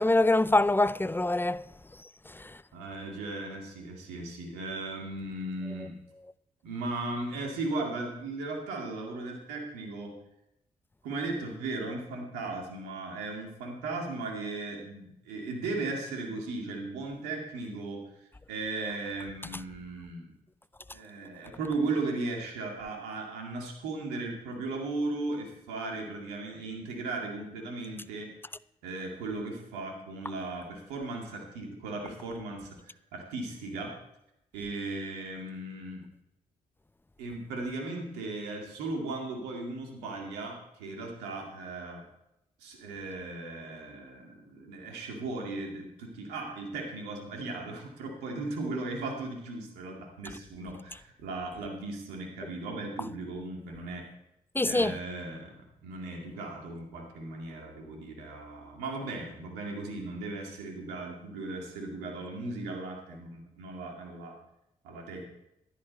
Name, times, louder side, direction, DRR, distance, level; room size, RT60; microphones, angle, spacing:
voice 1, 0.0-1.7 2.3-2.6 54.5-55.0, left 2 dB, 15° left, 0.5 m, -25 dB
voice 2, 2.7-6.0 6.6-10.2 11.0-20.4 20.9-28.3 28.8-33.9 34.5-36.1 37.2-42.1 42.6-54.1 54.6-64.4 64.8-65.3, right 2 dB, 85° right, 2.3 m, -37 dB
14.0 x 11.0 x 4.2 m
hypercardioid pair, 40°, 17 cm